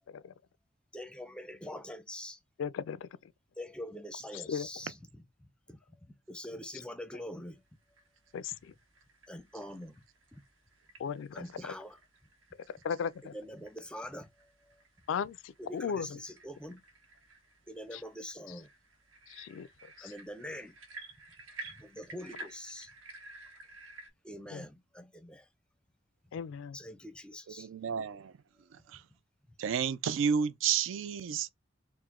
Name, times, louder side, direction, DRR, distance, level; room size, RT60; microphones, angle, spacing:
voice 1, 0.9-2.4 3.6-4.9 5.7-5.8 6.1-7.6 9.3-10.0 10.3-10.4 11.3-12.0 13.3-14.8 15.6-16.8 17.7-18.7 20.0-20.8 21.8-22.9 24.2-25.5 26.7-27.7, left 1 dB, 5° left, 0.5 m, -44 dB
voice 2, 2.6-3.1 4.3-4.7 8.3-8.7 11.0-11.7 12.7-13.3 15.1-16.2 17.9-18.0 18.5-18.6 19.3-20.1 24.5-24.7 26.3-26.8, left 7 dB, 75° left, 0.3 m, -37 dB
sound 1, 7.7-24.1, right 2 dB, 90° right, 1.1 m, -53 dB
voice 3, 27.5-28.4 28.7-29.0 29.6-31.5, right 7 dB, 70° right, 0.3 m, -31 dB
4.6 x 2.1 x 3.6 m
head